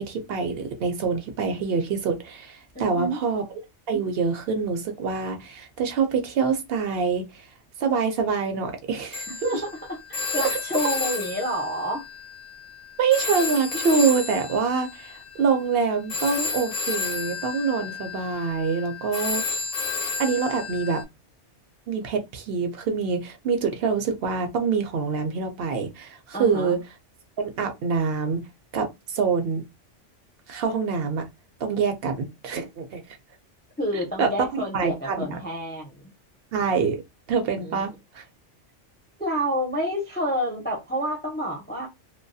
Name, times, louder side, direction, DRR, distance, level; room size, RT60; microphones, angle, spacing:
voice 1, 0.0-3.4 3.9-7.5 7.8-9.3 10.5-10.6 13.0-19.4 20.0-21.0 21.9-26.8 27.4-28.4 28.7-29.6 30.5-31.2 31.6-33.2 34.2-34.5 34.7-35.4 36.5-37.0 37.3-38.2, right 5 dB, 65° right, 0.7 m, -25 dB
voice 2, 2.7-3.2 9.4-12.0 26.3-26.8 33.8-36.1 37.6-37.8 39.2-41.9, equal, 15° left, 0.4 m, -29 dB
Telephone, 9.1-12.8 13.1-21.0, left 4 dB, 60° left, 0.7 m, -32 dB
2.3 x 2.2 x 2.5 m
omnidirectional pair, 1.2 m